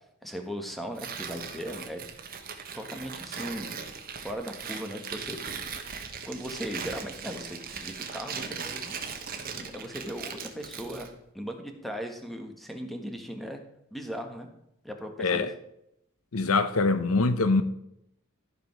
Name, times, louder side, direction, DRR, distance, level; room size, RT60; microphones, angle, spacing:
voice 1, 0.2-2.0 2.7-3.7 4.2-5.4 6.2-8.9 9.4-11.1 11.3-13.6 13.9-14.5 14.8-15.5, equal, ahead, 1.4 m, -38 dB
Tearing, 0.9-11.1, right 6 dB, 45° right, 1.3 m, -39 dB
voice 2, 15.2-15.5 16.3-17.6, left 3 dB, 75° left, 0.8 m, -24 dB
14.0 x 5.1 x 6.0 m
head